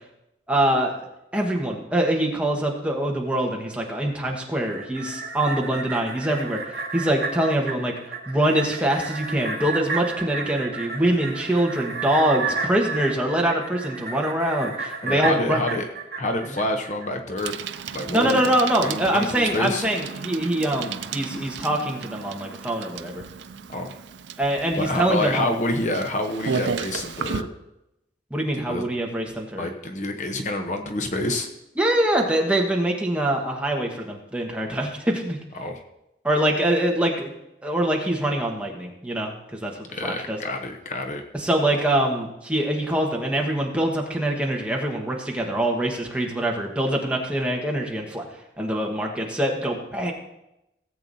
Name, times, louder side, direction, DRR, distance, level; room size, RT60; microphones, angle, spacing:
voice 1, 0.5-1.0 1.3-7.9 8.3-15.6 18.1-23.2 24.4-25.6 28.3-29.7 31.8-35.4 36.2-37.3 37.6-39.3 39.6-39.7 40.0-40.4 41.3-48.2 48.6-50.1, right 1 dB, 5° right, 0 dB, 1.3 m, -24 dB
sound 1, 4.5-17.1 17.5-17.6, right 4 dB, 60° right, 1.4 m, -32 dB
voice 2, 15.0-15.9 16.2-17.5 17.9-18.5 18.8-19.8 23.7-23.9 24.8-27.5 28.5-28.8 29.6-31.5 35.6-35.8 39.9-41.2, left 1 dB, 40° left, 4 dB, 0.8 m, -27 dB
Bicycle, 17.4-27.4, right 6 dB, 85° right, 0.5 m, -34 dB
17.5 x 8.0 x 2.7 m, 0.88 s
head